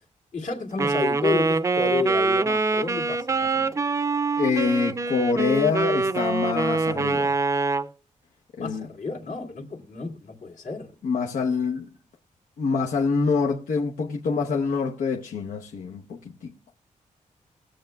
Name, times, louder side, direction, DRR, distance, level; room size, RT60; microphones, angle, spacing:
voice 1, 0.3-3.7 8.6-10.9, left 4 dB, 70° left, 2.1 m, -31 dB
Wind instrument woodwind instrument, 0.8-7.9, right 3 dB, 20° right, 0.4 m, -24 dB
voice 2, 4.4-7.3 8.6-8.9 11.0-11.9 12.6-16.5, left 5 dB, 90° left, 0.9 m, -25 dB
20.0 x 7.6 x 2.3 m
wide cardioid pair, 145°, 14 cm